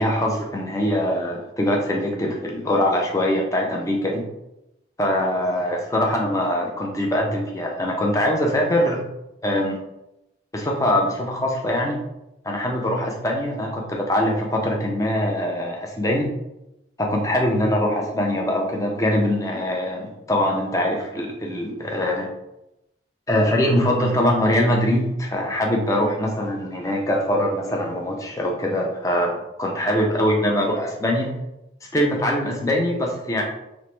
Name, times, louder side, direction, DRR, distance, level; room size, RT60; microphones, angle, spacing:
voice 1, 0.0-4.2 5.0-9.0 9.4-9.8 10.5-12.0 12.4-16.3 17.0-22.3 23.3-31.3 31.9-33.4, left 1 dB, 15° left, 0 dB, 0.4 m, -22 dB
3.0 x 2.1 x 3.0 m, 0.89 s
head